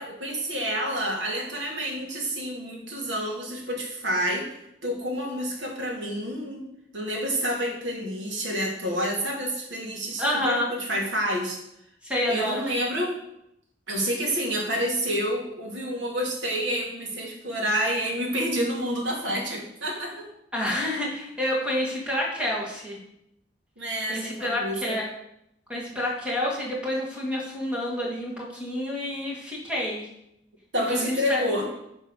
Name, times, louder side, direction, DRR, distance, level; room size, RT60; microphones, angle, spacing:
voice 1, 0.0-4.5 4.8-6.6 6.9-11.6 12.3-13.2 13.9-20.3 23.8-25.0 30.7-31.7, equal, 90° right, 0 dB, 2.6 m, -28 dB
voice 2, 10.2-10.7 12.0-12.6 20.5-23.0 24.1-25.1 25.7-30.1 30.9-31.4, left 1 dB, 5° right, -4 dB, 2.4 m, -28 dB
10.5 x 4.4 x 6.7 m, 0.80 s
head